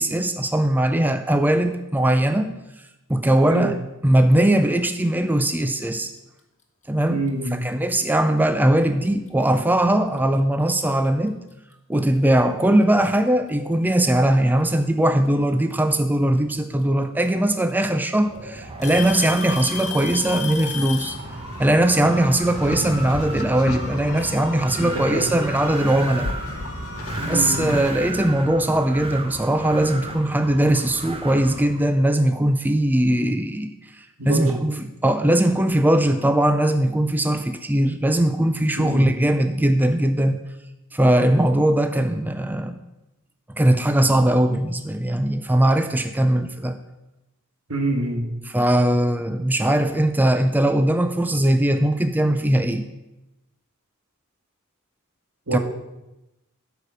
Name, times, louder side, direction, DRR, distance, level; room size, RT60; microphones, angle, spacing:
voice 1, 0.0-2.6 3.1-3.8 4.0-6.1 6.9-7.2 7.5-11.4 11.9-21.2 21.6-26.3 27.2-40.4 40.9-42.8 43.6-46.8 48.5-52.9 55.5-55.6, right 1 dB, 10° right, 8 dB, 0.4 m, -20 dB
voice 2, 7.1-7.7 24.8-25.3 27.2-27.7 34.2-34.6 38.8-39.2 47.7-48.3 55.5-55.6, right 2 dB, 75° right, 3 dB, 1.7 m, -26 dB
Alarm / Tick-tock, 7.3-7.5 8.4-8.5 9.3-9.4 11.1-11.2 12.4-12.5 13.7-14.2 15.9-16.0 17.3-17.4 17.7-18.1 18.8-21.2, left 7 dB, 35° left, 1.5 m, -32 dB
Wind, 18.3-31.9, right 2 dB, 25° right, 1.1 m, -34 dB
sound 1, 20.9-27.9, left 2 dB, 75° left, 0.9 m, -34 dB
12.5 x 5.0 x 6.4 m, 0.98 s
head